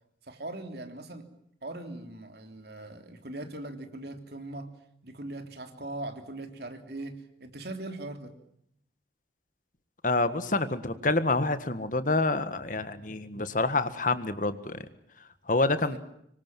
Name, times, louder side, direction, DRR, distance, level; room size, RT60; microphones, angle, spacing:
voice 1, 0.3-1.3 1.6-4.7 5.0-8.3 15.8-16.0, right 2 dB, 60° right, 6 dB, 3.4 m, -40 dB
voice 2, 10.0-14.8 15.5-16.0, left 2 dB, 45° left, 12 dB, 1.7 m, -27 dB
26.5 x 24.0 x 7.6 m, 0.73 s
head